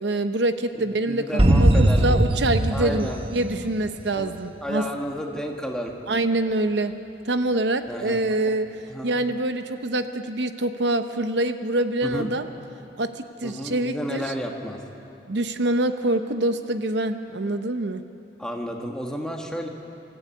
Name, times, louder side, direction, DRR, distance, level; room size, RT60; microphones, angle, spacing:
voice 1, 0.0-4.8 6.1-6.9 7.3-8.7 9.0-12.5 13.0-14.3 15.3-18.0, right 2 dB, 70° right, 9 dB, 0.8 m, -25 dB
voice 2, 0.8-2.2 2.7-3.2 4.1-5.9 7.9-8.5 8.9-9.2 12.0-12.3 13.4-14.8 18.4-19.7, equal, 5° left, 1 dB, 1.6 m, -32 dB
sound 1, 1.4-4.1, right 1 dB, 30° right, 0.9 m, -20 dB
25.0 x 13.5 x 8.5 m, 2.7 s
head